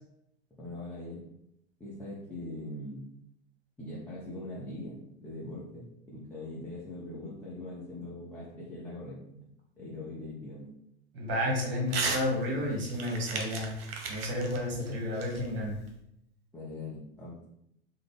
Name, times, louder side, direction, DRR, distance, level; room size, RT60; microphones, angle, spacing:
voice 1, 0.6-1.2 1.8-3.1 3.8-9.4 9.8-10.7 16.5-17.4, left 2 dB, 5° left, -8 dB, 0.7 m, -41 dB
voice 2, 11.1-13.7 14.1-15.8, left 1 dB, 35° right, -1 dB, 1.3 m, -31 dB
Crumpling crinkling / Tearing, 11.9-12.2 12.6-15.9, right 4 dB, 60° right, 0.8 m, -36 dB
3.7 x 2.2 x 3.5 m, 0.77 s
figure-of-eight pair, 85°, 33 cm